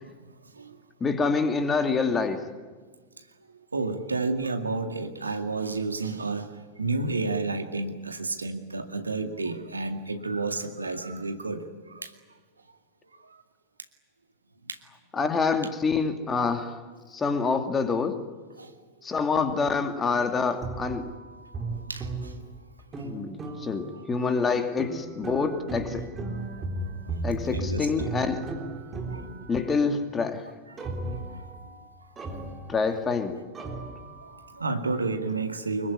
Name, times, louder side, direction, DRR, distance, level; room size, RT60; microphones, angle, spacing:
voice 1, 0.2-0.8 3.7-12.1 14.7-14.8 18.6-18.7 21.9-22.4 23.4-23.7 26.5-26.7 27.1-27.2 27.5-28.1 29.1-29.2 31.3-31.4 34.2-35.9, right 3 dB, 80° right, 6 dB, 2.1 m, -31 dB
voice 2, 1.0-2.4 15.1-16.8 17.1-18.2 19.0-21.1 23.0-26.0 27.2-28.4 29.5-30.5 32.7-33.4, left 4 dB, 20° left, 7 dB, 2.5 m, -26 dB
sound 1, 20.6-24.1 24.8-29.9 30.8-33.2 33.5-34.6, right 2 dB, 20° right, 3.7 m, -36 dB
25.0 x 22.0 x 9.7 m, 1.4 s
figure-of-eight pair, 90°, 0 cm